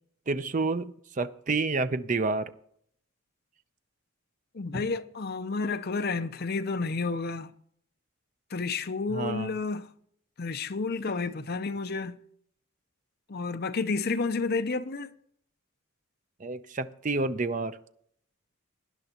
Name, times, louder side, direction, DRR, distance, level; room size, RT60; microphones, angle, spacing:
voice 1, 0.3-2.5 4.7-4.9 9.1-9.5 16.4-17.8, right 3 dB, 35° right, 0.6 m, -29 dB
voice 2, 4.5-7.5 8.5-9.9 10.4-12.2 13.3-15.1, left 4 dB, 50° left, 0.6 m, -30 dB
18.5 x 10.5 x 2.9 m
head